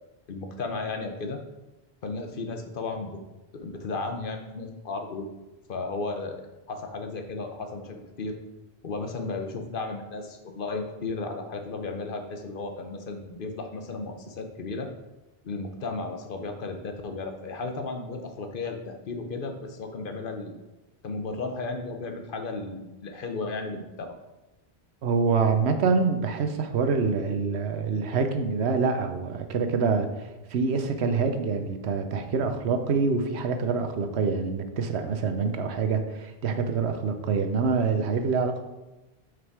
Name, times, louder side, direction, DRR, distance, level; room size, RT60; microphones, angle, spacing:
voice 1, 0.3-1.4 2.0-3.2 3.5-5.3 5.7-6.4 6.7-8.4 8.8-14.9 15.4-20.5 21.0-24.1, left 3 dB, 60° left, 5 dB, 0.9 m, -34 dB
voice 2, 25.0-38.6, right 5 dB, 85° right, 7 dB, 1.0 m, -26 dB
6.1 x 5.1 x 4.7 m, 1.0 s
omnidirectional pair, 1.1 m